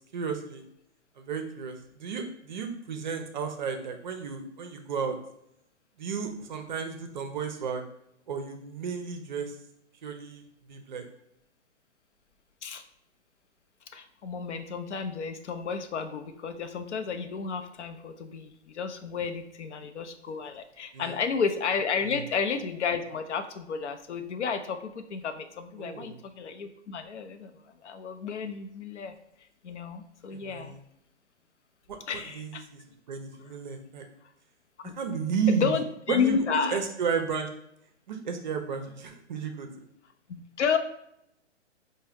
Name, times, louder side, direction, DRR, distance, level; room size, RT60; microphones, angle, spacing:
voice 1, 0.1-0.6 1.2-5.2 6.0-7.8 8.3-9.5 10.0-10.4 10.7-11.1 20.9-21.2 22.0-22.2 25.8-26.2 30.3-30.8 31.9-32.8 33.1-34.0 35.0-35.7 36.1-36.4 36.7-37.5 38.1-39.7, right 6 dB, 40° right, 5 dB, 0.5 m, -33 dB
voice 2, 13.9-27.5 27.8-29.1 29.6-30.7 32.1-32.6 34.8-35.0 35.5-36.8 40.3-40.8, left 6 dB, 70° left, 7 dB, 0.6 m, -31 dB
4.4 x 2.2 x 3.4 m, 0.77 s
hypercardioid pair, 140°, 36 cm